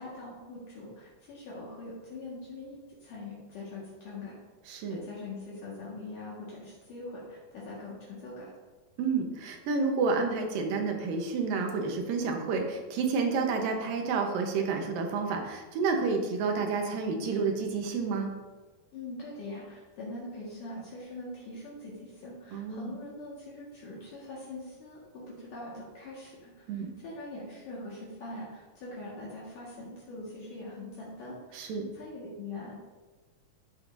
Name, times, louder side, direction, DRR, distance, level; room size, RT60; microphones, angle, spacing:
voice 1, 0.0-4.4 4.9-8.5 18.9-32.7, left 2 dB, 60° left, -6 dB, 3.1 m, -43 dB
voice 2, 4.7-5.0 9.0-18.3 22.5-22.9 26.7-26.9 31.5-31.9, right 4 dB, 70° right, 2 dB, 2.6 m, -30 dB
13.5 x 6.5 x 2.7 m, 1.2 s
omnidirectional pair, 4.4 m